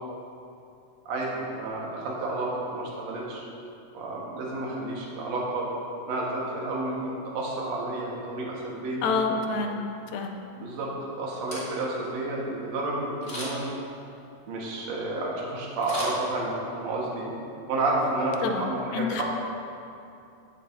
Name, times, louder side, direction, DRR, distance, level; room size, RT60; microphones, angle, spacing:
voice 1, 1.1-3.4 3.9-5.7 6.1-9.4 10.6-13.7 14.5-17.3 17.7-19.2, right 2 dB, 60° right, -4 dB, 2.3 m, -30 dB
voice 2, 9.0-9.8 10.1-10.4 18.4-19.2, left 4 dB, 85° left, 3 dB, 2.4 m, -28 dB
Camera, 11.5-12.1 13.2-13.8 15.8-16.8 17.2-17.3, equal, 25° left, 1.4 m, -38 dB
16.0 x 6.4 x 2.7 m, 2.6 s
omnidirectional pair, 4.0 m